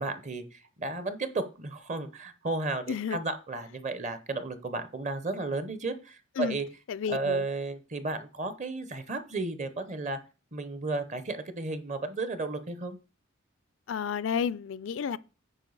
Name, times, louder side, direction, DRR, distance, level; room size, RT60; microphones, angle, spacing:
voice 1, 0.0-6.7 7.1-10.2 10.5-13.0, right 3 dB, 35° right, 0.8 m, -33 dB
voice 2, 2.9-3.2 6.4-6.6 6.9-7.5 13.9-15.2, left 7 dB, 65° left, 0.4 m, -31 dB
9.1 x 5.0 x 4.0 m
head